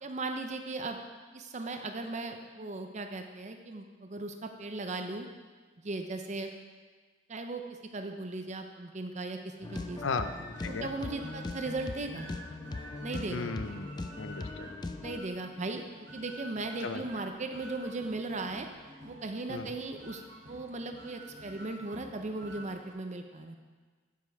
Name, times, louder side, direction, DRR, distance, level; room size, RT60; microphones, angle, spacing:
voice 1, 0.0-1.0 1.3-5.3 5.8-6.5 7.3-7.6 7.9-10.0 10.7-12.3 13.0-13.5 15.0-15.8 16.1-18.7 19.0-20.2 20.5-23.6, right 2 dB, 35° right, 5 dB, 0.6 m, -37 dB
sound 1, 9.6-15.2, left 2 dB, 20° left, 0.3 m, -40 dB
sound 2, 9.6-22.9, equal, 55° right, 2.6 m, -49 dB
voice 2, 10.0-10.3 10.6-10.9 13.3-14.7 16.8-17.0 19.5-19.7, left 4 dB, 65° left, 9 dB, 0.6 m, -36 dB
12.0 x 5.3 x 4.7 m, 1.5 s
head